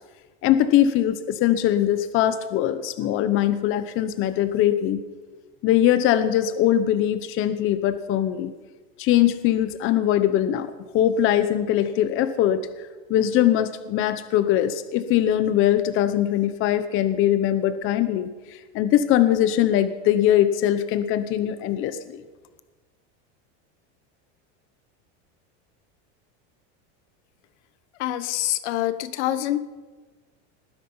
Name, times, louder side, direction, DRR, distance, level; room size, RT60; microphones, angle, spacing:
voice 1, 0.4-5.0 5.6-8.5 9.0-22.2, left 11 dB, 40° left, 12 dB, 0.9 m, -21 dB
voice 2, 28.0-29.6, left 13 dB, 80° left, 13 dB, 1.2 m, -25 dB
19.0 x 10.0 x 5.6 m, 1.3 s
supercardioid pair, 150°, 34 cm